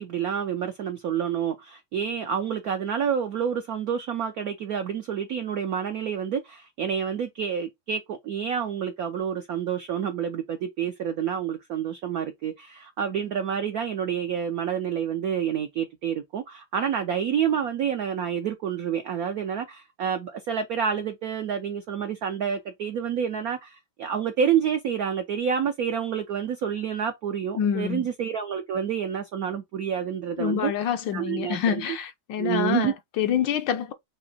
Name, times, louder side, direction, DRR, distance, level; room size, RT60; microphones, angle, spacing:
voice 1, 0.0-31.8 32.4-32.9, right 8 dB, 75° right, 0.8 m, -28 dB
voice 2, 27.6-28.1 30.4-33.9, left 8 dB, 75° left, 1.2 m, -26 dB
6.1 x 2.8 x 2.7 m
omnidirectional pair, 2.2 m